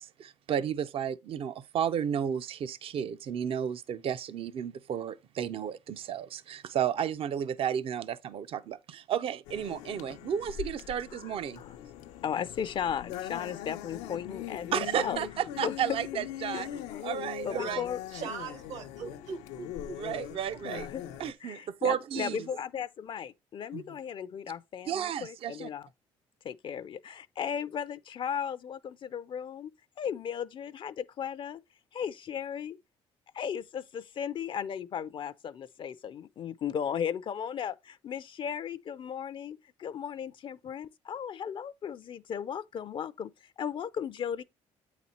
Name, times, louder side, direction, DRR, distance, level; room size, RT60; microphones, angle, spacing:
voice 1, 0.0-11.6 14.7-16.7 17.0-17.8 20.0-20.9 21.2-22.4 23.7-23.8 24.9-25.7, right 9 dB, 55° right, 0.6 m, -33 dB
sound 1, 9.5-21.3, left 12 dB, 90° left, 0.6 m, -41 dB
voice 2, 11.2-11.7 12.2-15.2 15.6-15.7 16.5-17.0 17.4-18.0 20.6-21.0 21.4-25.9 26.4-29.7 30.0-31.6 31.9-32.8 33.3-44.4, left 8 dB, 45° left, 0.4 m, -36 dB
voice 3, 18.1-20.0 20.5-20.6, right 6 dB, 75° right, 1.5 m, -40 dB
8.4 x 4.1 x 4.2 m
cardioid pair, 90°, 11 cm